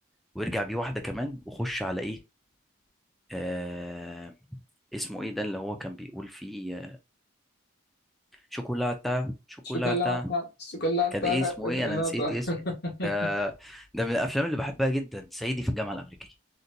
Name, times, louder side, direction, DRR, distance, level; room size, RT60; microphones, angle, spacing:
voice 1, 0.3-2.2 3.3-4.3 4.9-7.0 8.5-10.3 11.1-12.5 13.0-16.3, equal, ahead, 0.3 m, -31 dB
voice 2, 9.7-13.1, left 2 dB, 50° left, 1.1 m, -30 dB
3.9 x 2.2 x 2.5 m
head